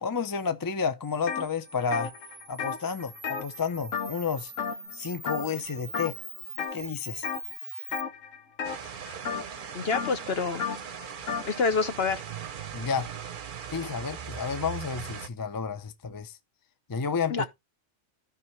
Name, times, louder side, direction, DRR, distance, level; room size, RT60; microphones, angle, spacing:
voice 1, 0.0-2.1 2.5-4.5 4.9-6.2 6.7-7.3 12.7-13.1 13.7-16.4 16.9-17.4, left 5 dB, 30° left, 0.4 m, -31 dB
Camera, 1.0-8.0, right 2 dB, 10° right, 0.7 m, -43 dB
sound 1, 1.3-1.5 1.8-4.3 4.6-5.0 5.3-5.6 5.9-6.8 7.2-7.5 7.9-11.5, left 6 dB, 80° left, 1.5 m, -34 dB
sound 2, 8.6-15.3, right 7 dB, 50° right, 0.8 m, -39 dB
voice 2, 9.7-10.6 11.4-12.2 17.3-17.5, left 4 dB, 55° left, 1.2 m, -27 dB
13.5 x 5.4 x 3.1 m
omnidirectional pair, 1.3 m